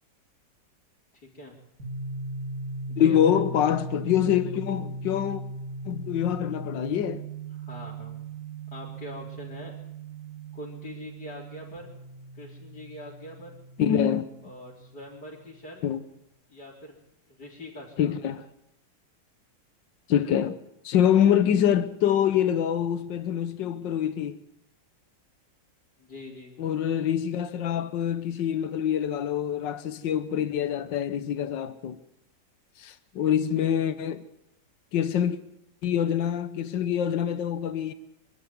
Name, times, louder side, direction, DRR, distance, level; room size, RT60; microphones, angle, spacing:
voice 1, 1.1-1.5 2.9-3.2 7.5-8.3 8.7-9.7 10.5-11.9 12.3-13.5 14.4-15.8 16.5-17.0 17.3-18.2 26.0-26.5, left 1 dB, 60° left, 4.7 m, -43 dB
sound 1, 1.8-15.4, right 3 dB, 55° right, 3.4 m, -39 dB
voice 2, 3.0-5.4 5.8-7.2 13.8-14.3 15.8-16.0 18.0-18.4 20.1-20.5 20.8-24.4 26.6-32.0 32.8-34.3 34.9-35.4 35.8-37.9, left 9 dB, 80° left, 1.7 m, -25 dB
25.5 x 12.5 x 9.5 m
omnidirectional pair, 2.0 m